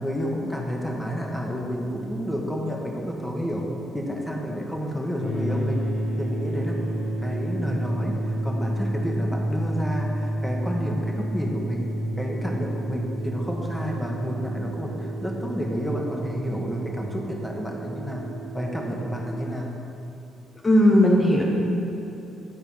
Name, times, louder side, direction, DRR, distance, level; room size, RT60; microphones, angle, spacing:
voice 1, 0.0-3.6 3.9-5.8 6.2-6.9 7.2-11.9 12.2-18.2 18.5-19.7, equal, 5° left, 0 dB, 1.5 m, -30 dB
sound 1, 5.2-19.3, right 1 dB, 85° left, 2.1 m, -30 dB
voice 2, 20.6-21.4, left 1 dB, 30° left, -2 dB, 1.1 m, -17 dB
11.0 x 4.4 x 5.6 m, 2.8 s
supercardioid pair, 55°, 0 cm